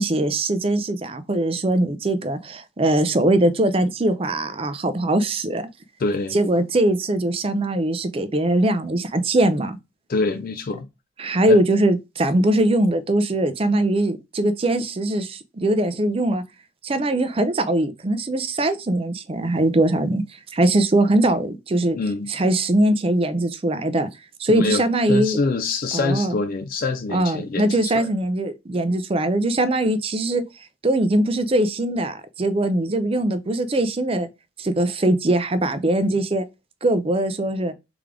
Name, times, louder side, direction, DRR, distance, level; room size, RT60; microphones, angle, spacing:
voice 1, 0.0-5.6 6.3-9.8 11.2-16.4 16.8-20.2 20.5-22.0 22.3-24.1 24.4-25.4 25.9-26.4 27.1-30.4 30.8-34.3 34.6-36.5 36.8-37.7, right 1 dB, 25° right, 0.4 m, -21 dB
voice 2, 6.0-6.4 10.1-10.9 11.5-11.6 22.0-22.3 24.5-28.1, left 3 dB, 45° left, 0.3 m, -25 dB
3.6 x 3.3 x 3.5 m
head